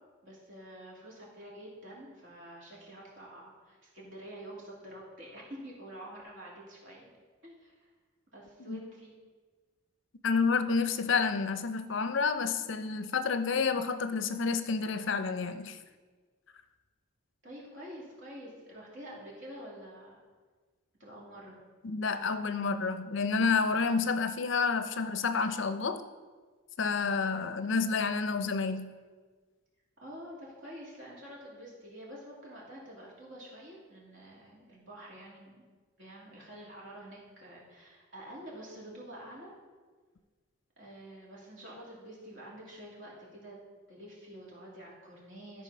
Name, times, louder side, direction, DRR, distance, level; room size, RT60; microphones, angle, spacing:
voice 1, 0.2-7.1 7.4-7.9 8.3-9.1 17.4-20.2 21.0-21.6 30.0-35.6 36.0-39.5 40.8-43.6 43.9-45.6, equal, 60° right, -5 dB, 2.7 m, -48 dB
voice 2, 10.2-15.8 21.8-26.0 26.8-28.9, left 5 dB, 60° left, 10 dB, 0.5 m, -29 dB
12.5 x 4.5 x 5.5 m, 1.4 s
head